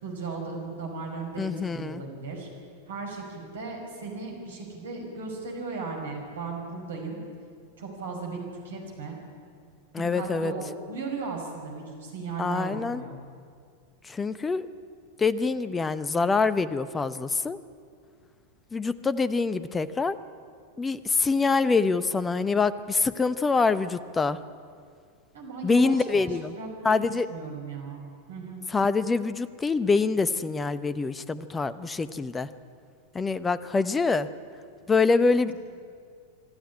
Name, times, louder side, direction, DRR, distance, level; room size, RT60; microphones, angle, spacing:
voice 1, 0.0-2.5 2.9-7.2 7.8-9.2 10.1-13.2 25.3-27.0 27.3-28.0 28.3-28.6 35.5-35.6, right 4 dB, 65° right, 1 dB, 5.7 m, -36 dB
voice 2, 1.4-2.0 9.9-10.5 12.4-13.0 14.0-14.7 15.2-17.6 18.7-20.2 20.8-24.4 25.6-26.5 26.8-27.3 28.7-32.5 33.1-34.3 34.9-35.5, left 4 dB, 15° left, 16 dB, 0.8 m, -25 dB
26.0 x 12.5 x 9.8 m, 2.2 s
figure-of-eight pair, 90°, 0 cm